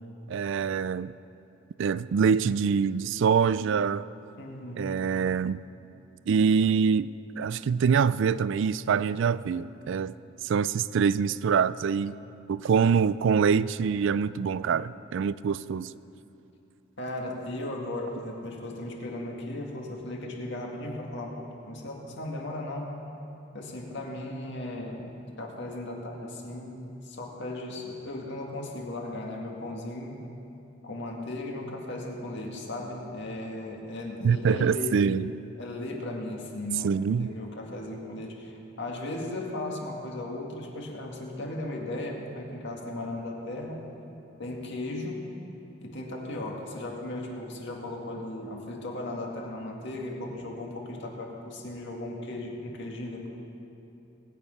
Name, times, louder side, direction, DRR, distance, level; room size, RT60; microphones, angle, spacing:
voice 1, 0.3-1.1 1.8-4.1 4.8-5.6 6.3-7.1 7.4-10.1 10.4-12.2 12.5-15.9 34.2-35.3 36.8-37.3, right 6 dB, 65° right, 0.3 m, -25 dB
voice 2, 4.4-4.9 17.0-22.9 23.5-26.7 27.0-30.2 30.8-35.1 35.6-36.9 37.2-43.9 44.4-45.3 45.8-53.3, left 1 dB, 60° left, 2.0 m, -36 dB
20.0 x 9.1 x 5.4 m
head